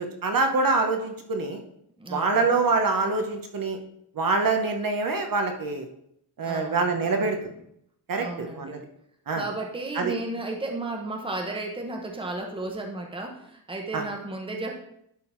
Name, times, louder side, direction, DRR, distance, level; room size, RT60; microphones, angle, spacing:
voice 1, 0.0-1.6 2.1-3.8 4.1-5.9 6.4-7.4 8.1-8.8 9.3-9.4 9.9-10.1 13.9-14.0, right 3 dB, 55° right, 4 dB, 0.9 m, -25 dB
voice 2, 2.0-2.5 6.4-7.5 8.2-8.8 9.3-14.8, right 2 dB, 15° right, 2 dB, 0.9 m, -34 dB
10.5 x 3.9 x 4.4 m, 0.74 s
wide cardioid pair, 175°, 41 cm